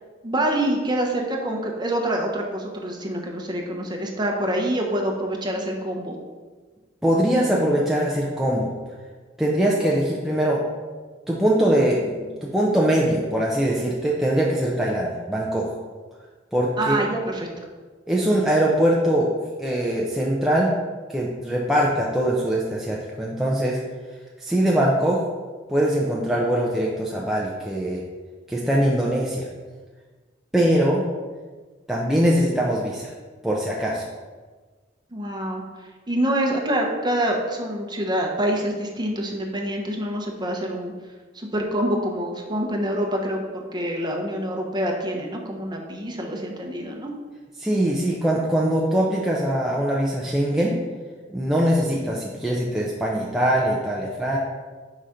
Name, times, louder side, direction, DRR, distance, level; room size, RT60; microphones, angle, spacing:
voice 1, 0.2-6.1 16.8-17.5 35.1-35.6 36.1-40.9 41.3-47.1, right 1 dB, 25° right, 0 dB, 0.8 m, -26 dB
voice 2, 7.0-8.7 9.4-10.6 11.3-15.7 16.5-17.0 18.1-19.3 19.6-20.7 21.1-23.8 24.4-25.2 25.7-28.0 28.5-29.5 30.5-31.1 31.9-33.1 33.4-34.0 47.6-50.8 51.3-54.4, right 1 dB, ahead, -4 dB, 0.5 m, -22 dB
4.9 x 3.9 x 5.7 m, 1.4 s
head